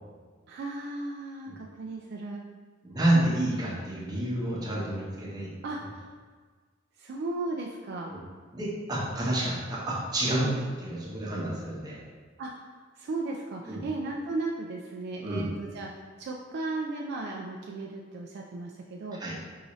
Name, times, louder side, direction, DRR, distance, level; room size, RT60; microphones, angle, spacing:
voice 1, 0.5-2.4 5.6-6.1 7.0-8.1 10.4-10.5 12.4-12.7 13.0-15.9 16.2-19.2, right 2 dB, 55° right, -1 dB, 0.3 m, -35 dB
voice 2, 2.8-5.5 8.1-8.2 8.5-10.5 10.8-12.0 13.7-13.8 15.2-15.4 19.2-19.4, right 1 dB, 20° right, -6 dB, 0.9 m, -29 dB
4.7 x 2.7 x 3.0 m, 1.5 s
head